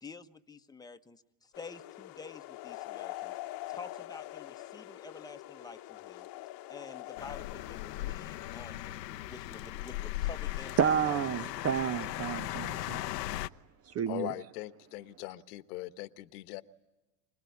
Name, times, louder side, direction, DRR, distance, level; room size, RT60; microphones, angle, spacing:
voice 1, 0.0-3.4 3.7-6.3 6.7-11.2 11.6-11.7, left 4 dB, 10° left, 1.2 m, -49 dB
sound 1, 1.5-8.6, left 16 dB, 45° left, 1.2 m, -44 dB
sound 2, 7.2-13.5, left 15 dB, 80° left, 0.9 m, -38 dB
voice 2, 10.8-13.1 13.9-14.3, right 8 dB, 30° right, 0.9 m, -30 dB
voice 3, 14.1-16.6, left 17 dB, 65° left, 1.3 m, -40 dB
26.0 x 20.0 x 9.6 m
hypercardioid pair, 100°, 48 cm